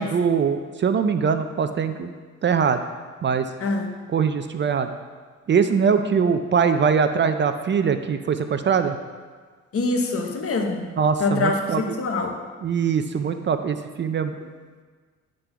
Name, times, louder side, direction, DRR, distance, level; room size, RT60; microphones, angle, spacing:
voice 1, 0.0-2.1 2.4-2.8 3.2-3.5 4.1-4.9 5.5-9.0 11.0-11.8 12.6-14.3, right 6 dB, 40° right, 9 dB, 0.5 m, -22 dB
voice 2, 3.6-3.9 9.7-10.9 11.2-12.4, left 3 dB, 50° left, 4 dB, 1.1 m, -24 dB
9.8 x 3.8 x 5.7 m, 1.5 s
cardioid pair, 90°, 30 cm